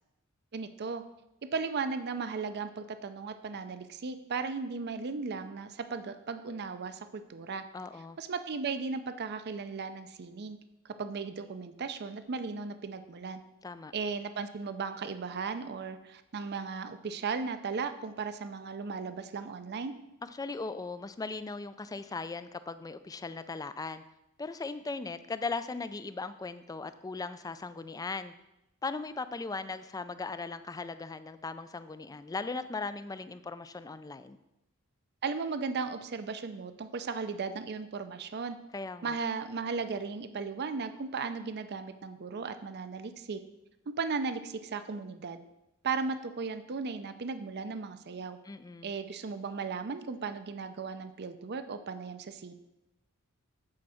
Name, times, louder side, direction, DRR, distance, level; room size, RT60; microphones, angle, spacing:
voice 1, 0.5-1.0 1.5-7.6 8.2-10.6 10.8-13.4 13.9-19.9 35.2-38.6 39.0-43.4 43.9-45.4 45.8-48.4 48.8-52.5, right 4 dB, 50° right, 10 dB, 0.5 m, -36 dB
voice 2, 7.7-8.2 13.6-13.9 20.2-24.0 24.4-28.3 28.8-34.4 38.7-39.2 48.4-48.9, left 3 dB, 15° left, 12 dB, 0.3 m, -38 dB
8.6 x 4.5 x 6.3 m, 0.90 s
head